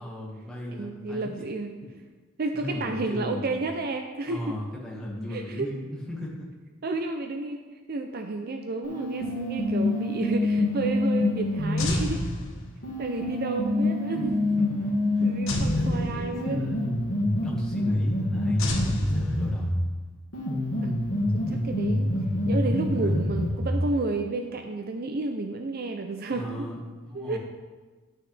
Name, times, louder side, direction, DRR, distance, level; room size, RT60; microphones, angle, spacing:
voice 1, 0.0-1.3 2.5-3.6 4.3-6.5 14.1-15.3 15.6-16.9 17.4-19.8 22.6-23.3 25.4-25.5 26.3-27.4, equal, 5° left, -5 dB, 1.7 m, -37 dB
voice 2, 0.7-1.7 2.4-4.6 5.3-5.7 6.8-7.6 7.9-12.2 13.0-14.3 15.2-16.8 20.8-21.0 21.3-22.2 22.5-26.7 27.1-27.4, right 3 dB, 50° right, 5 dB, 0.5 m, -31 dB
sound 1, 8.8-12.1 12.8-19.8 20.3-23.8, left 1 dB, 70° left, 1.9 m, -26 dB
sound 2, 11.8-13.0 15.5-16.7 18.6-19.9, left 2 dB, 85° left, 1.2 m, -31 dB
11.0 x 6.3 x 3.4 m, 1.3 s
head